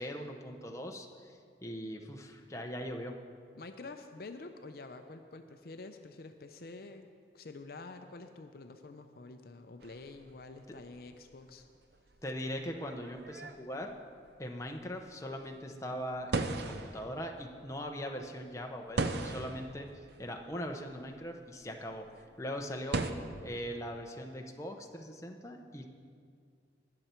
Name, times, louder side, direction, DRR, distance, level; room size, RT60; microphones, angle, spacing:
voice 1, 0.0-3.2 12.2-13.9 14.4-23.1 23.4-25.9, equal, 15° left, 2 dB, 0.7 m, -41 dB
voice 2, 3.6-7.1 7.3-11.7, left 3 dB, 55° left, 7 dB, 0.5 m, -48 dB
sound 1, 9.8-23.1, right 3 dB, 65° right, 0.6 m, -40 dB
20.0 x 6.8 x 4.4 m, 2.2 s
head